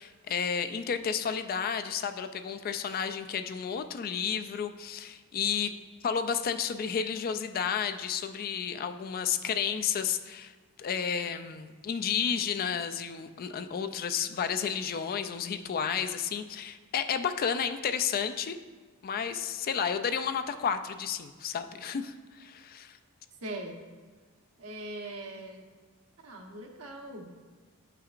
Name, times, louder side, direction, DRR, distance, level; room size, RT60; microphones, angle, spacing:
voice 1, 0.0-5.8 6.0-10.5 10.8-18.6 19.0-23.0, left 7 dB, 40° left, 9 dB, 0.3 m, -32 dB
voice 2, 23.4-23.9 24.6-25.7 26.2-27.3, right 1 dB, 80° right, 1 dB, 1.0 m, -41 dB
9.4 x 5.7 x 2.5 m, 1.4 s
head